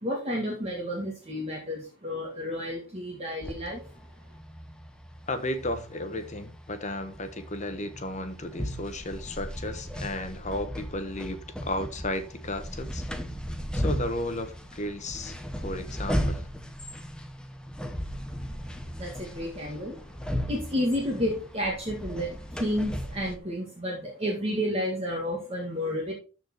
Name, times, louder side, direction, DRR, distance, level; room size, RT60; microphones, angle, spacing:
voice 1, 0.0-3.8 18.8-20.0 20.5-26.1, equal, 30° right, 2.0 m, -31 dB
sound 1, 3.4-23.4, equal, 5° left, 0.9 m, -36 dB
voice 2, 5.3-13.0 13.7-16.5, left 1 dB, 30° left, 1.2 m, -34 dB
13.5 x 4.5 x 4.5 m
head